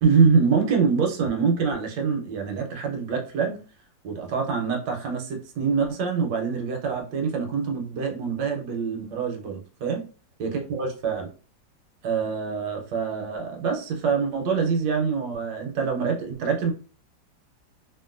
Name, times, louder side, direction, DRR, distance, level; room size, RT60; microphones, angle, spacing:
voice 1, 0.0-3.6 4.0-10.0 10.4-11.3 12.0-16.7, right 5 dB, 75° right, 2 dB, 1.3 m, -25 dB
3.0 x 2.5 x 2.4 m, 0.36 s
omnidirectional pair, 2.0 m